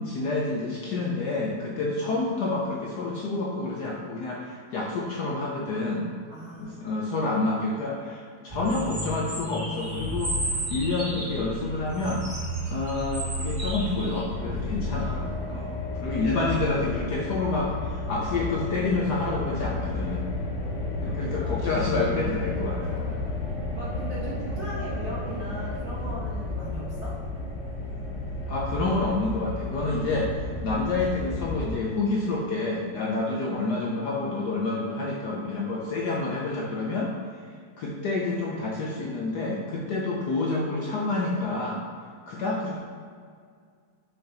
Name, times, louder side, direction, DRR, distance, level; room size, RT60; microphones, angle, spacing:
voice 1, 0.0-6.0 6.6-10.4 10.7-12.2 12.7-15.7 16.0-20.3 21.0-23.0 28.5-30.3 30.6-37.1 37.8-41.8 42.3-42.8, left 3 dB, 65° left, -3 dB, 1.1 m, -28 dB
voice 2, 6.3-6.9 21.0-21.7 22.8-23.4 23.7-27.2, right 1 dB, 40° right, -7 dB, 1.3 m, -39 dB
sound 1, 8.5-14.2, right 1 dB, 20° right, 1.2 m, -32 dB
sound 2, 14.3-31.7, left 2 dB, 85° left, 0.6 m, -32 dB
6.0 x 5.1 x 3.9 m, 2.1 s
omnidirectional pair, 2.4 m